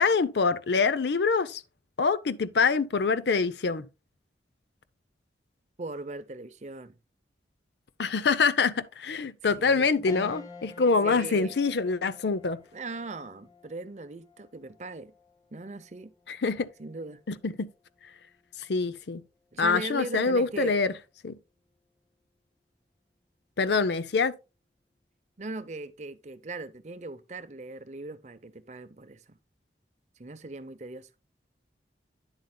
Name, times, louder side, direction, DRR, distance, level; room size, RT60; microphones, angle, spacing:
voice 1, 0.0-1.6 2.0-3.9 8.0-12.6 16.3-16.7 17.3-17.7 18.6-19.2 19.6-20.9 21.2-21.4 23.6-24.3, left 4 dB, 70° left, 0.6 m, -25 dB
voice 2, 5.8-7.0 9.6-9.9 11.0-11.5 12.7-15.1 15.5-16.1 16.8-17.2 19.5-20.7 25.4-29.4 30.2-31.1, right 2 dB, 40° right, 0.6 m, -39 dB
sound 1, 10.1-19.7 20.1-20.2 21.6-22.0, left 3 dB, 20° left, 0.8 m, -51 dB
9.8 x 7.8 x 2.2 m
head